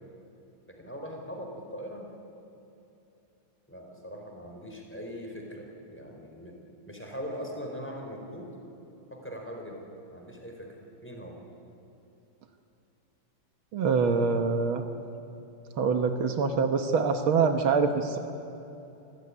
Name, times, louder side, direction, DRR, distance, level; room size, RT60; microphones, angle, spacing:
voice 1, 0.7-2.1 3.7-6.5 6.9-8.5 9.1-10.8 11.0-11.4, equal, 5° left, 0 dB, 4.3 m, -41 dB
voice 2, 13.7-14.8 15.8-18.2, right 5 dB, 75° right, 6 dB, 2.0 m, -25 dB
27.0 x 15.0 x 9.8 m, 2.9 s
omnidirectional pair, 2.3 m